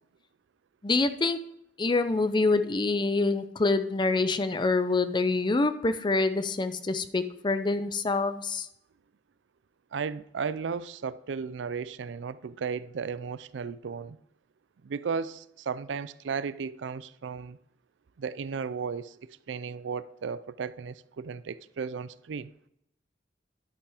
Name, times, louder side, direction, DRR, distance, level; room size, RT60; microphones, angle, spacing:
voice 1, 0.8-1.4 1.8-8.7, left 3 dB, 25° left, 0.5 m, -26 dB
voice 2, 9.9-14.2 14.8-17.6 18.2-22.5, right 5 dB, 90° right, 0.4 m, -35 dB
11.0 x 5.8 x 4.9 m
head